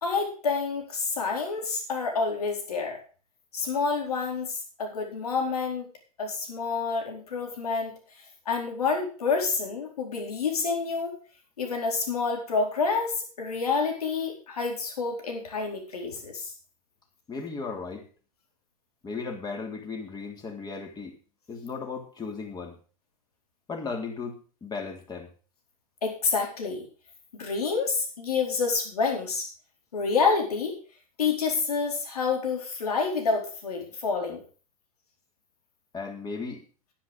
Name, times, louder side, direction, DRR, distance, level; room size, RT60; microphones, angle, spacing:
voice 1, 0.0-3.0 3.5-5.9 6.2-8.0 8.5-11.2 11.6-16.5 26.0-26.8 27.3-29.4 29.9-30.8 31.2-34.4, left 4 dB, 80° left, 1 dB, 4.4 m, -28 dB
voice 2, 17.3-18.0 19.0-21.2 21.5-22.8 23.7-25.3 35.9-36.6, left 4 dB, 20° left, 3 dB, 3.3 m, -36 dB
10.5 x 10.0 x 5.2 m, 0.37 s
hypercardioid pair, 105°, 19 cm